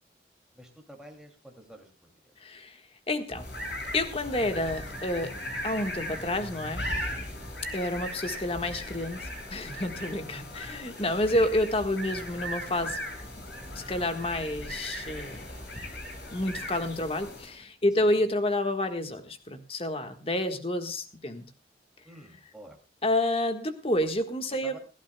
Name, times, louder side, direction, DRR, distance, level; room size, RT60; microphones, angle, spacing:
voice 1, 0.5-2.3 7.2-7.5 13.6-13.8 18.0-18.2 22.0-22.8 24.6-24.8, equal, 5° right, 1 dB, 2.6 m, -50 dB
voice 2, 2.4-2.8 3.1-3.5 3.9-5.4 5.6-6.8 7.7-13.0 13.7-15.4 16.3-21.4 23.0-24.7, left 1 dB, 30° left, 7 dB, 1.5 m, -29 dB
sound 1, 3.3-17.6, equal, 75° left, 6.3 m, -38 dB
29.0 x 11.5 x 2.3 m, 0.30 s
head